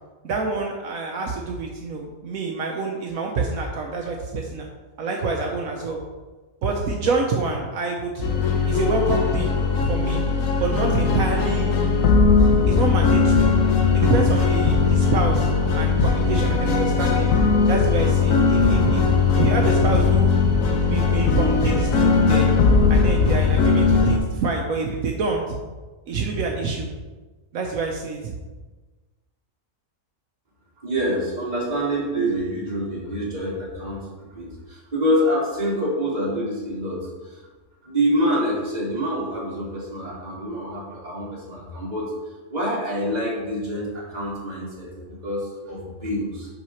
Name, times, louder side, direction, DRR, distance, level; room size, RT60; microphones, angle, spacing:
voice 1, 0.2-4.7 5.0-6.0 6.6-9.5 9.8-10.2 10.6-11.8 12.7-13.5 13.9-17.3 17.7-19.1 19.3-22.5 22.9-25.6 26.1-26.9 27.5-28.3, right 4 dB, 75° right, 1 dB, 1.2 m, -26 dB
sound 1, 8.2-24.2, left 4 dB, 70° left, 1.2 m, -19 dB
voice 2, 30.8-37.0 37.2-37.4 37.8-42.1 42.5-46.5, equal, 30° right, -6 dB, 2.3 m, -26 dB
5.9 x 4.9 x 5.7 m, 1.3 s
omnidirectional pair, 1.5 m